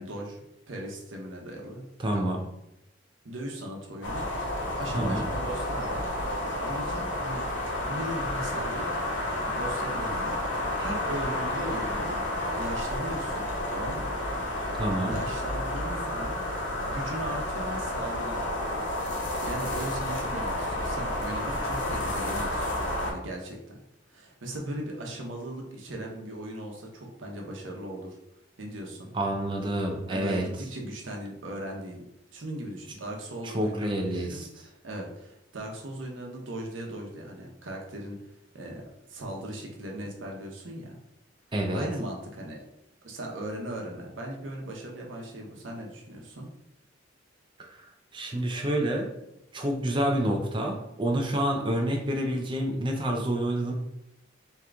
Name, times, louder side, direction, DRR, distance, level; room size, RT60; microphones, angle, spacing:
voice 1, 0.0-1.9 2.1-2.2 3.2-4.3 4.7-7.4 7.8-8.9 9.4-12.1 12.6-14.1 14.6-16.4 16.8-18.8 19.4-22.7 23.0-23.8 24.1-28.2 28.6-29.1 30.1-32.0 32.3-38.8 39.1-41.0 41.7-42.6 43.0-46.5, right 1 dB, 90° right, 0 dB, 0.9 m, -38 dB
voice 2, 2.0-2.4 4.9-5.3 14.8-15.2 29.1-30.4 33.4-34.5 41.5-41.9 47.6-47.7 48.1-49.1 49.5-53.7, right 1 dB, 25° right, 1 dB, 0.5 m, -28 dB
sound 1, 4.0-23.1, left 1 dB, 75° left, 1.1 m, -31 dB
3.7 x 2.9 x 3.4 m, 0.84 s
head